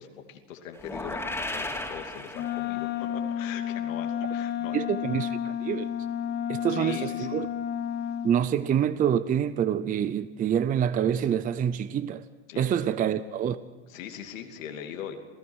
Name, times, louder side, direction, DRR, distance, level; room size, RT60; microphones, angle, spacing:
voice 1, 0.0-4.8 6.7-7.4 12.5-12.7 13.9-15.2, left 9 dB, 85° left, 2.8 m, -41 dB
sound 1, 0.8-3.0, left 2 dB, 5° left, 3.0 m, -35 dB
Wind instrument woodwind instrument, 2.3-8.4, left 9 dB, 25° left, 0.7 m, -31 dB
voice 2, 4.7-5.9 6.5-7.5 8.2-12.2 12.6-13.6, right 9 dB, 20° right, 0.6 m, -26 dB
27.5 x 16.5 x 6.3 m
supercardioid pair, 120°, 39 cm